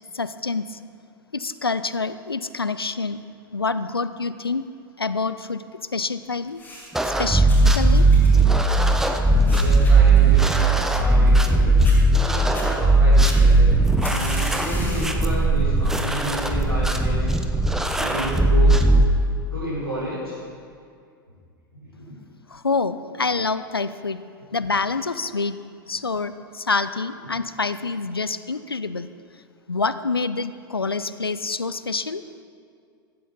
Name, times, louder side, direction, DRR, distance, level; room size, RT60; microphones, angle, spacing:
voice 1, 0.1-0.8 1.3-3.2 3.5-4.6 5.0-5.6 5.9-6.6 7.0-8.1 22.5-24.2 24.5-25.6 25.9-29.1 29.7-32.2, left 4 dB, 85° left, 13 dB, 0.4 m, -26 dB
sound 1, 6.5-7.1 7.5-11.5 11.8-12.0 12.4-12.7 13.2-15.2 15.7-16.0 16.8-16.9, left 1 dB, 15° left, 4.3 m, -39 dB
sound 2, 6.9-19.1, right 2 dB, 5° right, 0.8 m, -18 dB
voice 2, 9.3-11.8 12.2-13.6 14.0-17.4 18.0-18.8 19.5-20.4 21.8-21.9, equal, 90° right, -12 dB, 4.2 m, -31 dB
15.5 x 13.5 x 4.0 m, 2.3 s
figure-of-eight pair, 90°, 12 cm